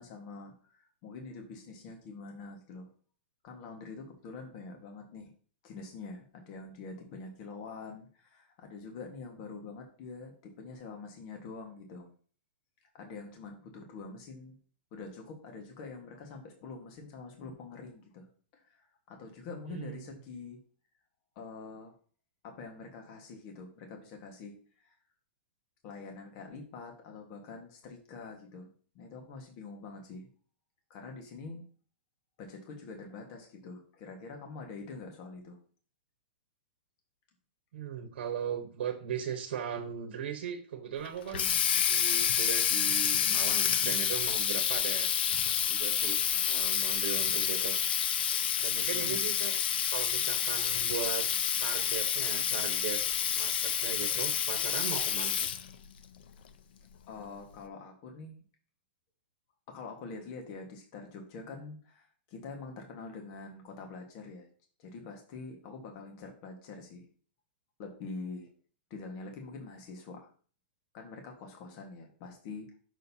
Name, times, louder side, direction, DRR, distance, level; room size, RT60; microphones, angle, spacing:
voice 1, 0.0-2.9 3.4-5.3 5.6-12.1 12.9-14.6 14.9-18.3 18.5-20.6 21.3-21.9 22.4-25.0 25.8-28.7 28.9-30.3 30.9-31.6 32.4-35.6 48.9-49.2 57.1-58.4 59.7-64.5 64.8-67.1 67.8-68.5 68.9-70.3 70.9-72.8, left 4 dB, 35° left, 2 dB, 1.5 m, -45 dB
voice 2, 19.7-20.0 37.7-41.5 41.8-45.1 45.7-46.2 46.5-47.8 48.6-49.5 49.9-51.2 51.6-53.0 53.3-55.5, right 8 dB, 65° right, 5 dB, 1.1 m, -38 dB
Water tap faucet, 41.0-55.7, left 9 dB, 65° left, 0.6 m, -29 dB
6.4 x 6.4 x 2.8 m, 0.42 s
hypercardioid pair, 165°, 6 cm